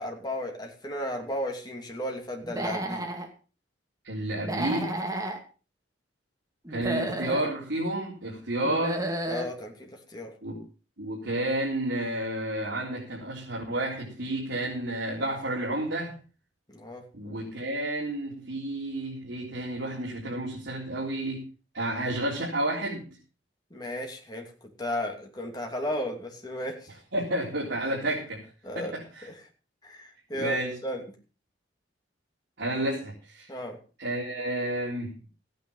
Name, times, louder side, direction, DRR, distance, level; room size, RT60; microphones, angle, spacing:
voice 1, 0.0-3.1 9.3-10.3 16.7-17.0 23.7-24.5 24.8-26.9 28.6-29.0 29.2-29.4 29.8-30.6 30.8-31.0 33.5-33.8, equal, 20° left, 2 dB, 2.8 m, -34 dB
Human voice / Animal, 2.4-3.3 4.4-5.4 6.7-7.5 8.6-9.5, right 1 dB, 20° right, 2.3 m, -31 dB
voice 2, 4.0-4.9 6.7-9.0 10.4-10.6 11.0-16.2 17.1-21.4 21.7-23.0 27.1-28.5 28.8-29.3 30.3-30.7 32.6-33.5 34.0-35.1, right 1 dB, 80° right, -4 dB, 3.9 m, -31 dB
15.0 x 9.4 x 5.6 m, 0.36 s
head